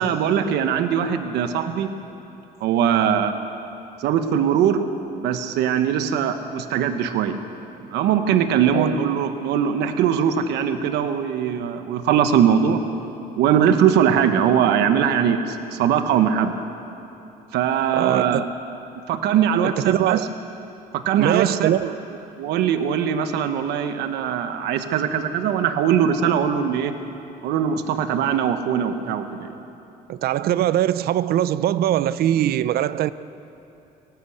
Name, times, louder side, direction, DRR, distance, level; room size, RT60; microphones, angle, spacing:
voice 1, 0.0-1.9 2.6-3.3 4.0-4.8 5.2-7.4 7.8-12.8 13.4-16.5 17.5-18.4 19.1-20.2 21.0-21.7 22.4-26.9 27.4-29.5, right 8 dB, 85° right, 1.2 m, -21 dB
voice 2, 17.9-18.5 19.6-20.3 21.2-22.0 30.1-33.1, right 12 dB, 65° right, 0.6 m, -22 dB
18.5 x 17.5 x 8.1 m
cardioid pair, 110°, 17 cm